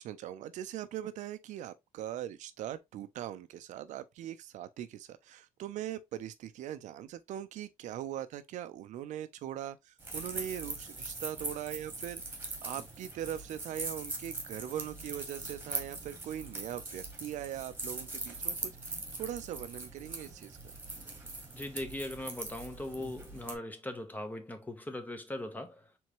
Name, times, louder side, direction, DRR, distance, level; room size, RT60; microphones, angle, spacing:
voice 1, 0.0-20.6, right 11 dB, 85° right, 0.6 m, -41 dB
sound 1, 10.0-23.6, right 2 dB, 15° right, 1.5 m, -41 dB
voice 2, 21.5-25.8, left 1 dB, 15° left, 1.0 m, -40 dB
4.5 x 3.5 x 3.0 m
cardioid pair, 115°, 12 cm